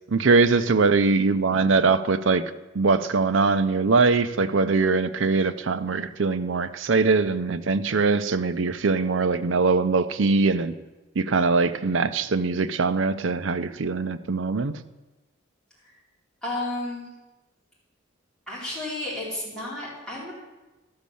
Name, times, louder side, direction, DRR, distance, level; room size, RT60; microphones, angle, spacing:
voice 1, 0.1-2.4 2.7-10.7 11.2-14.8, right 4 dB, 75° right, 11 dB, 0.6 m, -22 dB
voice 2, 16.4-17.1 18.5-20.3, left 2 dB, 5° left, -8 dB, 4.0 m, -32 dB
13.0 x 6.3 x 6.9 m, 1.1 s
head